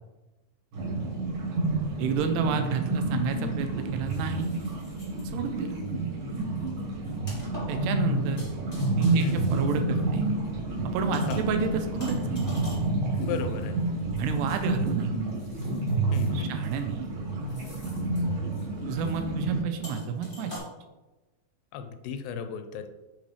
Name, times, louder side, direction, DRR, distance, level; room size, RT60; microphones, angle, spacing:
sound 1, 0.7-19.6, right 2 dB, 60° right, 3.2 m, -29 dB
voice 1, 2.0-4.5 5.2-5.8 7.7-8.4 9.0-10.2 10.8-12.4 14.2-15.1 16.3-17.1 18.9-20.5, right 6 dB, 90° right, 6 dB, 2.8 m, -30 dB
sound 2, 4.0-5.3 5.7-5.9 6.3-10.4 11.1-11.6 12.0-14.9 15.3-16.3 16.6-17.0 17.5-18.2 18.5-18.6 18.9-19.2 19.8-20.6, equal, 20° left, 1.3 m, -46 dB
voice 2, 9.2-9.5 11.3-11.4 13.2-13.8 16.1-16.6 21.7-22.9, left 6 dB, 85° left, 8 dB, 2.5 m, -34 dB
8.9 x 4.0 x 3.3 m, 1.1 s
omnidirectional pair, 4.7 m